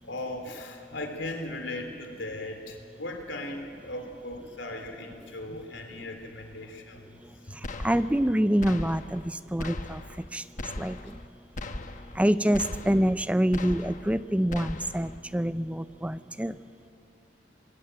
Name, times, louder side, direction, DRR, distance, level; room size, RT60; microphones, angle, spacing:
voice 1, 0.0-7.2 7.5-7.6, left 1 dB, 80° left, 5 dB, 3.4 m, -38 dB
sound 1, 7.6-8.3 8.6-9.3 9.6-10.3 10.6-11.3 11.6-12.2 12.5-13.2 13.5-14.2 14.5-15.2, left 2 dB, 45° left, 1.1 m, -38 dB
voice 2, 7.8-10.0 10.3-10.4 10.8-11.0 12.2-16.5, equal, 5° right, 13 dB, 0.6 m, -26 dB
25.0 x 20.5 x 9.1 m, 2.4 s
head